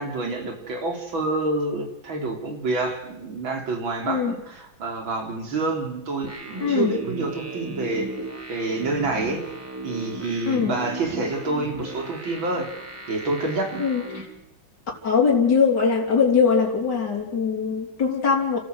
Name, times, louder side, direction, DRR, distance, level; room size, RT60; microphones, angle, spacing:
voice 1, 0.0-8.1 8.5-9.4 9.8-12.7 13.1-13.8, right 2 dB, 80° right, 3 dB, 4.3 m, -28 dB
sound 1, 6.2-14.2, right 2 dB, 5° right, 4.9 m, -36 dB
voice 2, 6.6-6.9 10.5-10.7 13.8-14.2 15.0-18.6, left 6 dB, 55° left, 0 dB, 4.0 m, -21 dB
29.0 x 14.5 x 8.0 m, 0.81 s
omnidirectional pair, 2.1 m